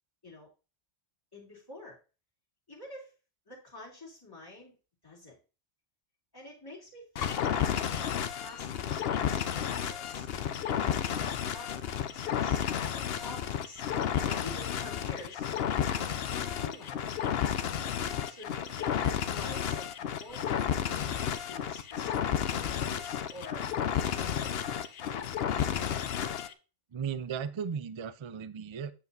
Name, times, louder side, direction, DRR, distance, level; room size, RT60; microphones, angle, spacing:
voice 1, 1.3-2.0 2.7-3.1 3.5-4.7 5.0-5.4 6.3-13.8 14.2-16.1 16.5-17.3 18.3-25.3, left 2 dB, 20° left, -5 dB, 3.2 m, -48 dB
sound 1, 7.2-26.5, left 9 dB, 70° left, 0.8 m, -32 dB
voice 2, 26.9-28.9, right 7 dB, 40° right, 14 dB, 0.4 m, -36 dB
8.4 x 7.0 x 2.7 m, 0.32 s
omnidirectional pair, 1.1 m